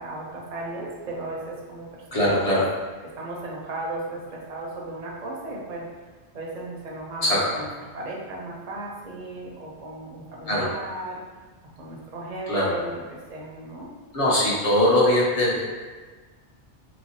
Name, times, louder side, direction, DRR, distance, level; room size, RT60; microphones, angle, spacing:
voice 1, 0.0-2.6 3.0-5.9 6.3-7.7 7.9-11.2 11.7-13.9, right 2 dB, 45° right, -3 dB, 0.7 m, -36 dB
voice 2, 2.1-2.6 7.2-7.6 10.5-10.7 12.5-12.7 14.1-15.8, left 1 dB, 35° left, -6 dB, 0.9 m, -21 dB
3.4 x 3.1 x 2.7 m, 1.4 s
omnidirectional pair, 1.1 m